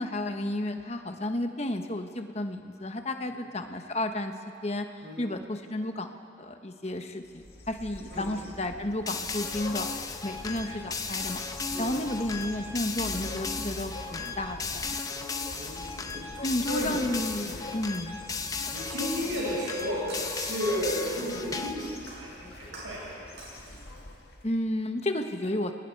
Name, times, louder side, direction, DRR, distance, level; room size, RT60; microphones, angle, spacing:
voice 1, 0.0-4.3 4.6-4.9 5.2-6.1 6.4-9.9 10.2-11.4 11.8-14.8 16.4-18.2 24.4-25.7, left 1 dB, 35° left, 6 dB, 1.1 m, -32 dB
sound 1, 7.3-24.6, left 1 dB, 55° left, 2.1 m, -44 dB
sound 2, 9.1-22.0, left 4 dB, 20° left, 0.8 m, -36 dB
voice 2, 15.2-16.3 16.7-17.0 17.4-17.6 18.7-20.0 20.3-23.5, equal, 80° right, -5 dB, 6.0 m, -34 dB
Shatter, 19.6-21.7 22.1-23.1 23.4-24.1 24.5-24.6, right 2 dB, 60° right, 7.2 m, -47 dB
29.0 x 21.0 x 4.6 m, 2.5 s
head